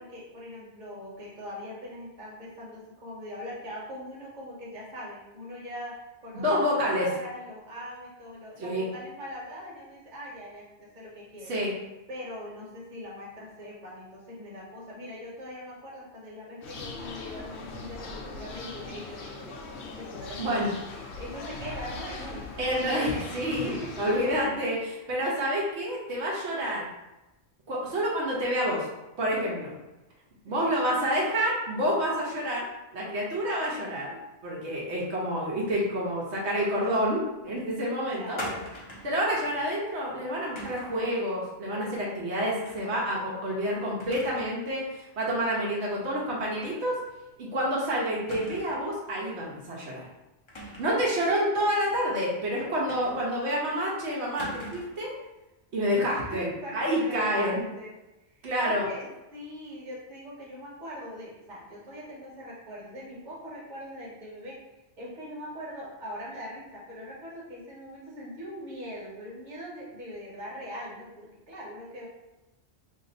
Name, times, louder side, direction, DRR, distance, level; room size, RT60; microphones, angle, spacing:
voice 1, 0.0-5.9 6.2-11.5 12.1-19.6 20.0-22.6 22.9-24.5 25.1-25.3 30.5-30.9 38.1-38.8 51.2-51.4 56.0-58.0 58.4-64.6 65.0-72.1, equal, 45° right, -5 dB, 1.1 m, -41 dB
voice 2, 6.3-7.1 8.6-8.8 11.5-11.7 20.4-20.7 22.6-26.9 27.7-28.9 29.2-29.7 30.4-32.7 32.9-34.1 34.4-38.4 39.0-47.0 47.4-50.1 50.8-55.1 55.7-56.5 56.7-57.6 58.4-58.8, equal, 80° right, -4 dB, 1.1 m, -28 dB
sound 1, 16.6-24.5, left 3 dB, 85° left, 0.9 m, -40 dB
sound 2, 38.4-39.2 40.6-41.0 42.6-43.0 43.3-43.4 44.0-44.5 44.9-45.0 46.6-46.8 47.1-47.2 48.3-48.9 50.5-51.0 52.9-53.4 54.4-55.0, equal, 30° left, 0.6 m, -41 dB
2.9 x 2.5 x 4.1 m, 0.99 s
omnidirectional pair, 1.1 m